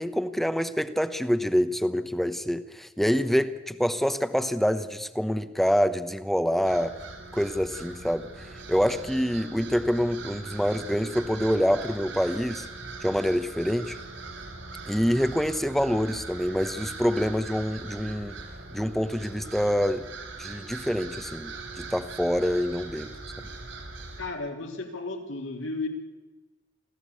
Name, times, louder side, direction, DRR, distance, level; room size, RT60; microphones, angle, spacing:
voice 1, 0.0-6.9 7.3-8.3 8.7-12.7 13.0-14.0 14.8-18.4 18.7-20.0 20.4-23.1, equal, ahead, 11 dB, 1.0 m, -26 dB
sound 1, 6.6-24.3, right 3 dB, 75° right, 5.9 m, -41 dB
voice 2, 24.2-25.9, left 3 dB, 75° left, 3 dB, 3.6 m, -33 dB
26.0 x 15.0 x 8.4 m, 1.3 s
head